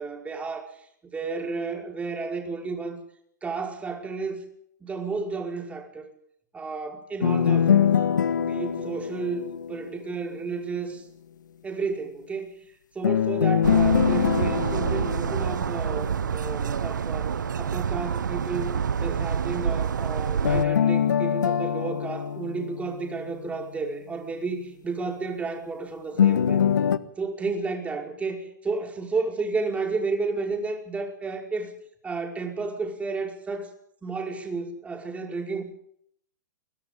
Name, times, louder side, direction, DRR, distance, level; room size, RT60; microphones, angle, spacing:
voice 1, 0.0-3.0 3.4-4.4 4.8-6.1 6.5-7.9 8.4-9.4 9.7-11.1 11.6-26.7 27.2-31.7 32.0-33.7 34.0-35.6, right 4 dB, 15° right, 2 dB, 5.5 m, -32 dB
sound 1, 7.2-10.3 13.0-16.3 20.4-23.5 26.2-27.0, left 8 dB, 85° left, 1.5 m, -24 dB
sound 2, 13.6-20.6, right 7 dB, 90° right, 0.8 m, -27 dB
29.0 x 23.5 x 3.9 m, 0.69 s
hypercardioid pair, 125°, 10 cm